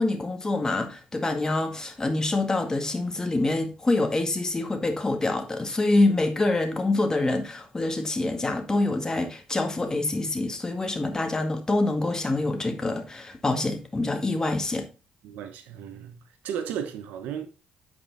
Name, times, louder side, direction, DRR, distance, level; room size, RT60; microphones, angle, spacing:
voice 1, 0.0-14.9, left 2 dB, 25° left, 1.9 m, -26 dB
voice 2, 15.2-16.2 16.4-17.5, right 8 dB, 85° right, 1.1 m, -34 dB
8.6 x 4.9 x 4.0 m
supercardioid pair, 70°, 3 cm